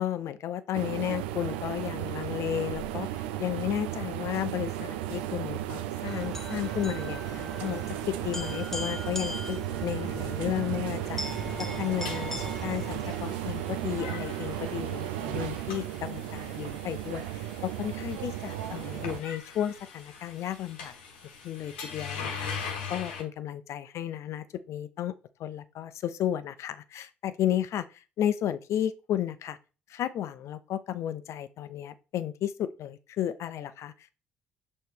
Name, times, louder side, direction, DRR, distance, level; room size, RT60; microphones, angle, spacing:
voice 1, 0.0-11.2 11.6-20.9 21.4-25.1 25.4-29.6 29.9-33.9, left 11 dB, 60° left, 0.6 m, -33 dB
sound 1, 0.7-19.2, right 13 dB, 80° right, 0.4 m, -35 dB
sound 2, 6.1-13.6, left 1 dB, 5° left, 0.8 m, -39 dB
sound 3, 11.0-23.2, left 5 dB, 85° left, 1.0 m, -42 dB
6.6 x 3.2 x 4.4 m
hypercardioid pair, 50°, 5 cm